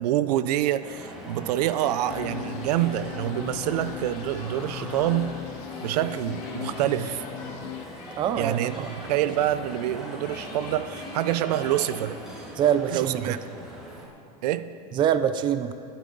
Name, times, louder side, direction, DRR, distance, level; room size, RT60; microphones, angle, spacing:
voice 1, 0.0-5.3 5.8-7.2 8.4-12.2 12.9-13.4 14.4-14.7, right 12 dB, 75° right, 0.6 m, -26 dB
sound 1, 0.8-14.1, equal, 5° right, 2.4 m, -40 dB
sound 2, 1.9-12.0, left 3 dB, 85° left, 3.6 m, -49 dB
sound 3, 2.1-7.9, left 16 dB, 50° left, 0.5 m, -39 dB
voice 2, 8.1-8.9 12.6-13.4 14.9-15.7, right 9 dB, 25° right, 0.5 m, -24 dB
24.5 x 8.5 x 3.9 m
supercardioid pair, 150°, 20 cm